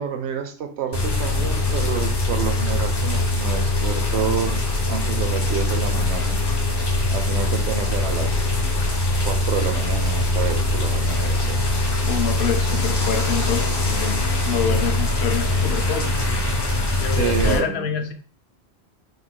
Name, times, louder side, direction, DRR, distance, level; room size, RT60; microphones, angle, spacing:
voice 1, 0.0-4.6 4.9-6.4 7.1-8.5 9.3-11.6 17.1-17.9, right 7 dB, 85° right, 6 dB, 0.9 m, -28 dB
sound 1, 0.9-17.6, left 2 dB, 30° left, 0.5 m, -22 dB
voice 2, 12.1-14.2 14.5-16.1 17.0-18.1, left 7 dB, 75° left, 6 dB, 0.8 m, -27 dB
3.2 x 3.1 x 2.2 m, 0.43 s
omnidirectional pair, 1.1 m